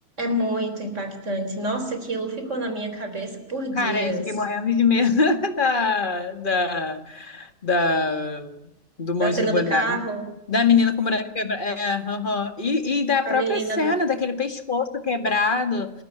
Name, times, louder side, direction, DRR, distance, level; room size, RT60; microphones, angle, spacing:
voice 1, 0.2-4.3 9.2-10.2 13.3-13.9, right 2 dB, 65° right, 8 dB, 4.2 m, -27 dB
voice 2, 3.8-8.7 9.0-10.0 10.5-15.9, left 4 dB, 40° left, 8 dB, 2.1 m, -23 dB
28.0 x 13.5 x 9.2 m, 0.90 s
omnidirectional pair, 1.4 m